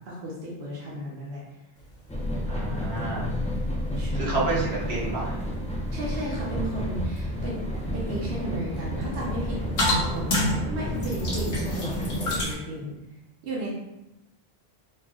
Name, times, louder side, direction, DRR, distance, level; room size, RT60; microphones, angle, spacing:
voice 1, 0.1-1.4 4.0-4.4 5.9-7.6 7.9-12.9 13.4-13.7, equal, 65° right, -6 dB, 1.0 m, -35 dB
sound 1, 1.8-12.5, left 1 dB, 80° left, 1.2 m, -34 dB
sound 2, 2.1-12.4, equal, 10° left, 0.4 m, -30 dB
voice 2, 2.5-3.3 4.1-5.4, right 2 dB, 85° right, -7 dB, 1.5 m, -29 dB
4.4 x 3.1 x 2.3 m, 0.92 s
omnidirectional pair, 1.0 m